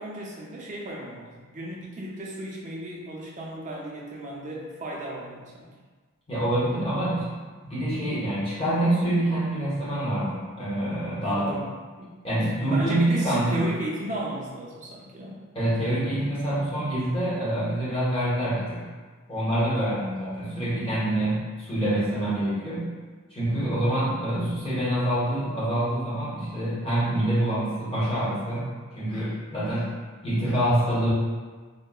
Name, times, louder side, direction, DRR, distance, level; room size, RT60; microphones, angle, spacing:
voice 1, 0.0-5.7 11.2-11.7 12.4-15.4, right 1 dB, 35° right, -3 dB, 0.4 m, -35 dB
voice 2, 6.3-7.3 7.6-11.6 12.2-13.7 15.5-18.8 19.3-22.9 23.3-28.7 28.9-29.9 30.2-31.1, right 1 dB, 25° left, -9 dB, 0.8 m, -26 dB
3.6 x 2.0 x 2.3 m, 1.4 s
head